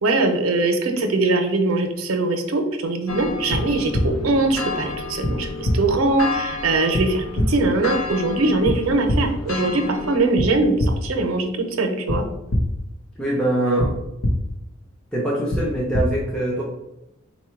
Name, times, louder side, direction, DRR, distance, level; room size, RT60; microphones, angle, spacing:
voice 1, 0.0-11.5 11.8-12.2, right 2 dB, 90° right, 5 dB, 0.6 m, -21 dB
sound 1, 3.1-10.2, left 4 dB, 85° left, 0.6 m, -32 dB
sound 2, 3.5-3.6 3.9-4.0 5.2-5.3 5.6-5.7 6.9-7.0 7.4-7.5 8.6-8.7 9.1-9.2 10.4-10.5 10.8-10.9 12.1-12.2 12.5-12.6 13.8-13.9 14.2-14.3 15.5-15.6 15.9-16.0, left 1 dB, 50° left, 0.8 m, -21 dB
voice 2, 13.2-14.0 15.1-16.6, right 1 dB, 5° left, -5 dB, 0.6 m, -23 dB
4.2 x 2.2 x 4.4 m, 0.86 s
head